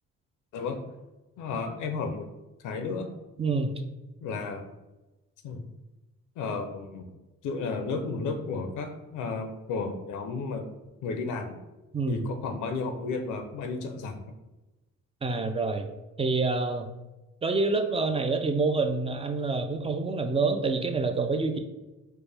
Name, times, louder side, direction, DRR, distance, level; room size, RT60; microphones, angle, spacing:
voice 1, 1.4-2.3 2.6-3.1 4.2-4.7 5.4-5.6 6.4-7.0 7.4-10.7 11.0-11.6 12.1-14.3, left 4 dB, 80° left, 6 dB, 0.6 m, -33 dB
voice 2, 3.4-3.8 11.9-12.2 15.2-15.9 16.2-16.9 17.4-21.6, right 3 dB, 20° right, 6 dB, 0.3 m, -27 dB
4.5 x 2.1 x 3.3 m, 1.1 s
cardioid pair, 90°, 30 cm